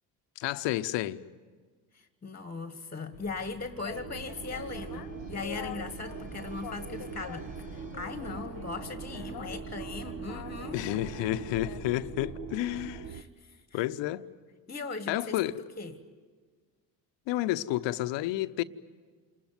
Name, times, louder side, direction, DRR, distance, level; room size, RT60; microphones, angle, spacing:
voice 1, 0.4-1.2 10.7-13.1 13.7-14.2 15.1-15.6 17.3-18.6, left 15 dB, 65° left, 0.9 m, -30 dB
voice 2, 1.9-10.8 13.1-13.8 14.7-16.0, left 3 dB, 20° left, 1.5 m, -39 dB
Boat Water vehicle, 3.1-12.4, left 10 dB, 45° left, 1.1 m, -46 dB
sound 1, 3.2-13.5, right 2 dB, 15° right, 4.7 m, -57 dB
sound 2, 3.8-13.2, right 6 dB, 40° right, 1.3 m, -42 dB
28.0 x 20.5 x 9.5 m
hypercardioid pair, 65°, 48 cm